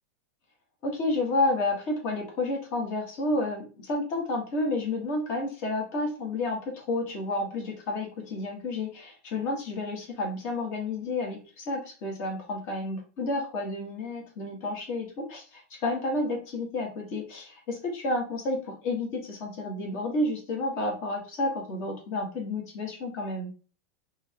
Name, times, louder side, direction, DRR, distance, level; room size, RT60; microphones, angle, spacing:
voice 1, 0.8-23.5, left 2 dB, 35° left, 0 dB, 1.8 m, -30 dB
3.9 x 3.4 x 3.7 m, 0.36 s
supercardioid pair, 165°, 8 cm